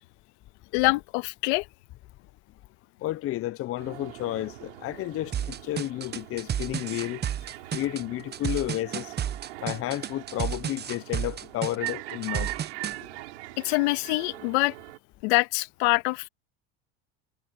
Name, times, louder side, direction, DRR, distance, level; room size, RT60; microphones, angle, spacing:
voice 1, 0.7-1.7 13.6-14.8 15.2-16.3, left 24 dB, 75° left, 2.3 m, -25 dB
voice 2, 3.0-7.2 7.7-9.1 9.6-12.5, left 15 dB, 45° left, 0.7 m, -31 dB
sound 1, 3.8-15.0, right 19 dB, 85° right, 7.7 m, -41 dB
sound 2, 5.3-13.0, right 9 dB, 30° right, 1.0 m, -32 dB
supercardioid pair, 95°, 33 cm